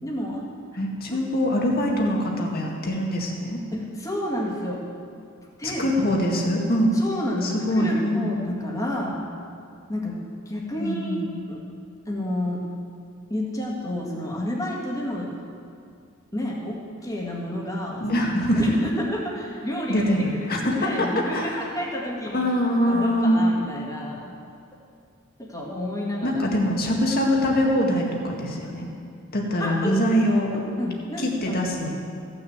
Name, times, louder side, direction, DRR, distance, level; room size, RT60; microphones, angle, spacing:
voice 1, 0.0-0.4 1.1-1.2 3.7-4.8 5.6-5.9 6.9-9.2 9.9-11.2 11.5-11.6 12.1-12.6 13.3-15.3 16.3-18.3 18.5-22.5 22.9-24.3 25.4-26.4 29.6-30.0 30.5-31.6, left 1 dB, 15° left, -3 dB, 2.0 m, -30 dB
voice 2, 0.8-3.6 5.6-7.0 7.4-8.3 10.8-11.3 18.0-18.8 19.9-21.6 22.3-23.4 26.2-28.9 29.3-30.5 31.2-32.0, equal, 50° left, 0 dB, 1.9 m, -23 dB
15.0 x 6.4 x 8.0 m, 2.4 s
head